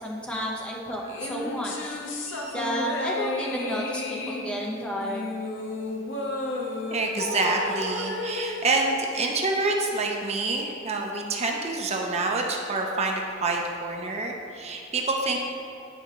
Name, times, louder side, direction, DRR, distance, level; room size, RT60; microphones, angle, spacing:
voice 1, 0.0-2.0 2.5-5.3, equal, 5° left, -2 dB, 0.9 m, -31 dB
sound 1, 1.1-9.7, left 2 dB, 70° left, 0.9 m, -33 dB
voice 2, 6.9-15.4, right 3 dB, 35° right, 1 dB, 0.6 m, -27 dB
11.0 x 4.7 x 3.0 m, 2.7 s
head